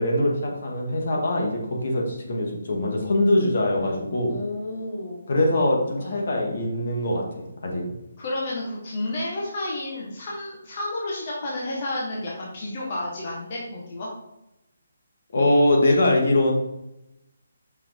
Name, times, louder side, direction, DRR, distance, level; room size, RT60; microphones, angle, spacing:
voice 1, 0.0-4.3 5.3-7.8 15.3-16.5, left 1 dB, 55° left, 0 dB, 1.9 m, -22 dB
voice 2, 4.3-5.3 6.0-6.2 8.2-14.1, left 1 dB, 35° left, -4 dB, 1.5 m, -31 dB
5.8 x 5.1 x 4.7 m, 0.87 s
hypercardioid pair, 170°, 0 cm